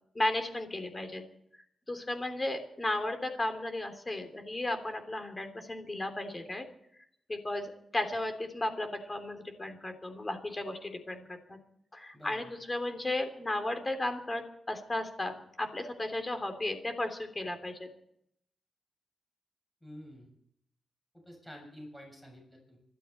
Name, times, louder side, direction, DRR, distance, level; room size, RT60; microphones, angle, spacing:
voice 1, 0.1-1.2 1.9-6.7 7.3-11.6 11.9-17.9, left 1 dB, 25° left, 6 dB, 3.2 m, -34 dB
voice 2, 12.1-12.5 19.8-20.3 21.3-22.8, equal, 5° left, 0 dB, 7.2 m, -49 dB
26.0 x 12.5 x 4.4 m, 0.72 s
cardioid pair, 90°, 0 cm